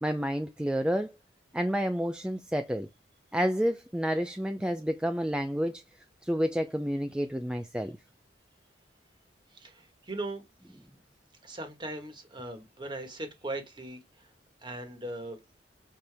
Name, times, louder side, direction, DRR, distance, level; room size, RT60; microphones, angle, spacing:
voice 1, 0.0-1.1 1.5-2.9 3.3-5.8 6.2-8.0, equal, 5° right, 0.4 m, -29 dB
voice 2, 9.5-10.4 11.4-14.3 14.6-15.4, right 2 dB, 25° right, 1.4 m, -39 dB
6.7 x 4.3 x 3.4 m
head